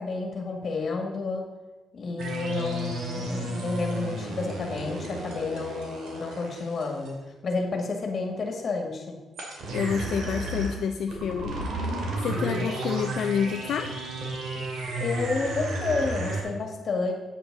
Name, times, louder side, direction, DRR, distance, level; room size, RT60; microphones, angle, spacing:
voice 1, 0.0-1.5 1.9-7.2 7.4-9.2 15.0-17.1, left 3 dB, 45° left, 2 dB, 1.9 m, -30 dB
sound 1, 2.2-7.1 9.4-16.4, right 2 dB, 80° right, 2.5 m, -33 dB
voice 2, 9.7-11.6 12.2-13.9, left 7 dB, 70° left, 6 dB, 0.4 m, -28 dB
8.7 x 7.9 x 4.0 m, 1.2 s
cardioid pair, 115°, 0 cm